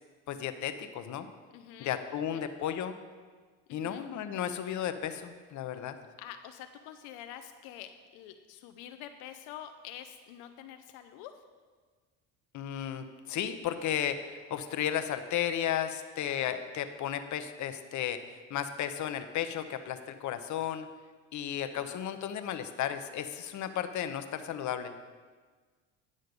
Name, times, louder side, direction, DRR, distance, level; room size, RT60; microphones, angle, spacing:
voice 1, 0.3-1.3 1.8-3.0 3.7-6.0 12.5-18.2 18.5-20.9 21.3-24.9, left 10 dB, 50° left, 9 dB, 0.8 m, -34 dB
voice 2, 1.5-2.5 3.7-4.1 6.2-11.3, left 10 dB, 80° left, 8 dB, 0.7 m, -47 dB
9.7 x 6.4 x 5.2 m, 1.5 s
supercardioid pair, 85°, 37 cm